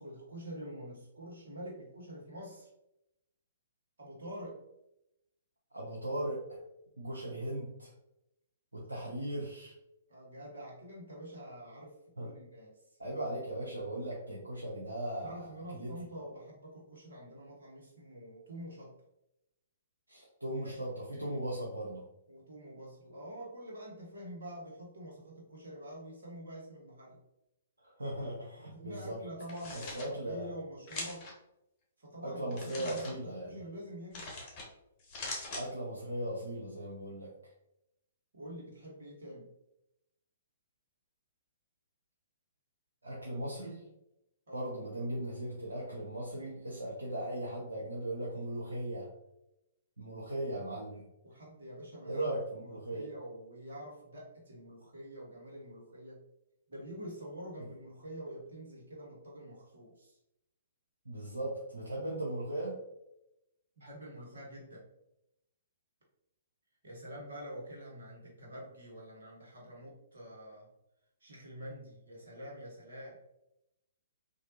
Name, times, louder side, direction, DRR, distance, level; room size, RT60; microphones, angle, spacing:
voice 1, 0.0-2.7 4.0-4.6 10.1-12.7 15.2-18.9 20.5-21.4 22.3-27.2 28.7-31.3 32.0-34.5 38.3-39.5 44.5-44.7 51.2-52.2 52.5-56.2 56.7-60.2 63.8-64.8 66.8-70.7 71.2-73.2, equal, 65° right, -4 dB, 1.3 m, -47 dB
voice 2, 5.7-6.6 7.0-7.9 8.7-9.7 12.2-12.3 13.0-15.9 20.1-22.0 27.8-29.2 29.7-30.5 32.2-33.6 35.5-37.3 43.0-43.9 44.5-49.1 50.0-51.1 52.1-53.1 61.0-62.7, right 1 dB, 85° right, -5 dB, 0.7 m, -38 dB
sound 1, 29.4-30.1 30.9-31.3 32.5-33.1 34.1-34.7 35.0-35.6, left 3 dB, 30° left, 1.1 m, -41 dB
3.3 x 2.6 x 2.7 m, 0.86 s
figure-of-eight pair, 120°, 0 cm